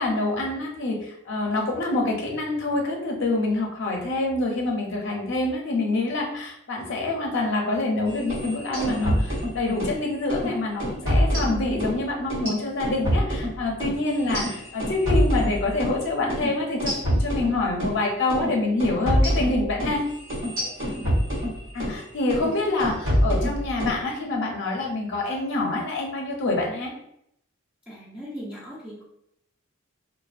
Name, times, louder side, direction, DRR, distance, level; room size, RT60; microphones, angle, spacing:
voice 1, 0.0-14.4 14.7-20.0 21.7-26.9, left 2 dB, 55° left, 0 dB, 0.5 m, -26 dB
sound 1, 8.2-10.0 10.3-10.5 10.8-12.0 12.3-16.0 16.3-16.5 16.8-18.0 18.3-18.5 18.8-22.0 22.3-22.5 22.8-24.0, equal, 60° right, 1.2 m, -25 dB
voice 2, 14.1-14.6 20.8-21.2 27.9-29.0, equal, 5° right, -9 dB, 0.4 m, -38 dB
2.4 x 2.2 x 2.4 m, 0.75 s
head